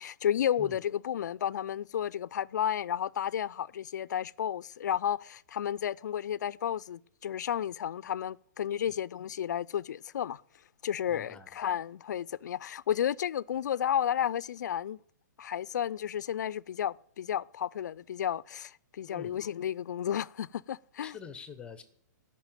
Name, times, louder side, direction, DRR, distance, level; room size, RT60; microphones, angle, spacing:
voice 1, 0.0-10.4 10.8-15.0 15.4-21.2, left 9 dB, 70° left, 0.4 m, -32 dB
voice 2, 11.1-11.6 19.1-19.4 21.0-21.8, left 6 dB, 10° left, 0.8 m, -46 dB
13.5 x 5.9 x 9.0 m
hypercardioid pair, 150°, 10 cm